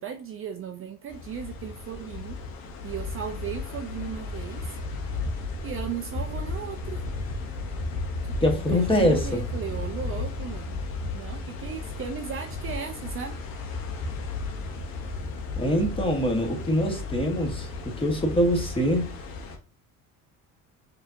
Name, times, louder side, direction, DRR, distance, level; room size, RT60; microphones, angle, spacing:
voice 1, 0.0-2.4 2.8-4.8 5.6-7.0 8.2-10.8 11.1-13.4, right 7 dB, 40° right, 5 dB, 0.4 m, -36 dB
sound 1, 1.1-19.6, left 3 dB, 70° left, 0.9 m, -34 dB
voice 2, 8.4-9.4 15.6-19.1, equal, 15° left, 2 dB, 1.1 m, -24 dB
4.8 x 2.8 x 2.5 m, 0.38 s
cardioid pair, 105°, 35 cm